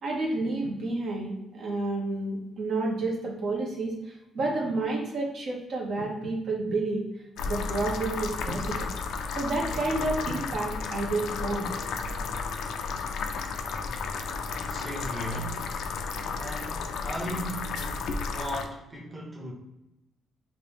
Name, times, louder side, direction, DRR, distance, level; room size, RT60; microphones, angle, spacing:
voice 1, 0.0-7.0 7.4-8.9 9.3-11.7, right 2 dB, 65° right, -2 dB, 1.0 m, -30 dB
sound 1, 7.4-18.7, left 5 dB, 80° left, 0.4 m, -33 dB
voice 2, 14.6-15.6 16.4-19.5, right 1 dB, 25° right, -1 dB, 0.9 m, -37 dB
3.2 x 2.7 x 3.5 m, 0.93 s
cardioid pair, 90°, 0 cm